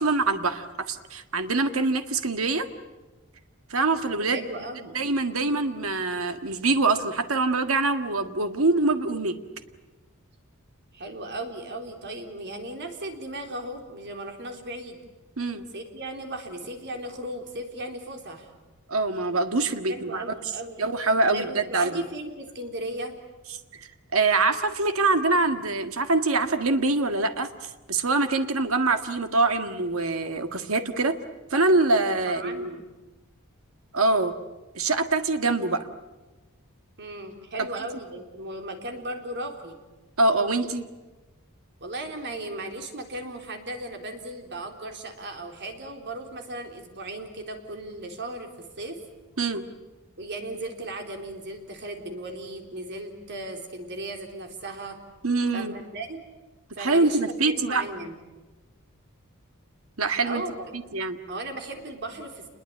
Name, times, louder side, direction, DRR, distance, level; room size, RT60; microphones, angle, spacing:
voice 1, 0.0-2.7 3.7-4.4 4.9-9.4 15.4-15.6 18.9-20.3 20.8-22.0 23.7-31.2 31.5-32.7 33.9-34.3 34.8-35.9 37.6-37.7 40.2-40.8 49.4-49.6 55.2-55.8 56.8-57.8 60.0-60.4 60.9-61.2, right 3 dB, 70° right, 8 dB, 1.8 m, -24 dB
voice 2, 4.3-5.0 10.9-15.0 15.7-18.5 19.9-20.8 21.3-23.1 32.0-32.8 37.0-39.8 41.8-49.0 50.2-55.0 55.5-56.2 56.7-58.2 60.2-60.7 61.3-62.5, right 1 dB, 55° right, 4 dB, 3.8 m, -36 dB
28.0 x 21.5 x 8.7 m, 1.2 s
head